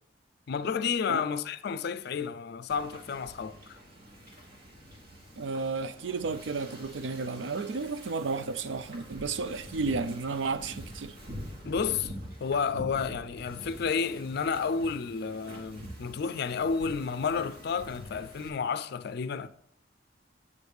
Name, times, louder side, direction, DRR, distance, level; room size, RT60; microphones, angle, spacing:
voice 1, 0.5-3.8 11.6-12.1 12.4-19.5, left 5 dB, 60° left, 0.4 m, -31 dB
Wind / Ocean, 2.7-18.5, equal, 55° right, 1.5 m, -46 dB
voice 2, 5.4-11.2, right 4 dB, 75° right, 0.5 m, -33 dB
8.5 x 3.5 x 6.3 m
head